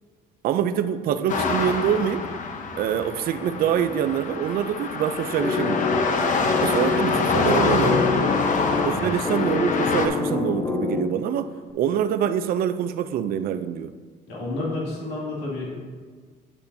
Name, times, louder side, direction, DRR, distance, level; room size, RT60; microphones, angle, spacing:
voice 1, 0.4-2.3 2.8-5.9 6.6-8.0 8.9-11.5 11.7-13.9, right 9 dB, 60° right, 0.4 m, -25 dB
sound 1, 1.3-10.1, left 4 dB, 50° left, 1.0 m, -26 dB
sound 2, 5.4-11.4, left 4 dB, 25° left, 0.8 m, -26 dB
voice 2, 7.5-9.4 14.3-15.7, left 2 dB, 85° left, 2.3 m, -30 dB
9.1 x 8.5 x 2.7 m
cardioid pair, 110°, 17 cm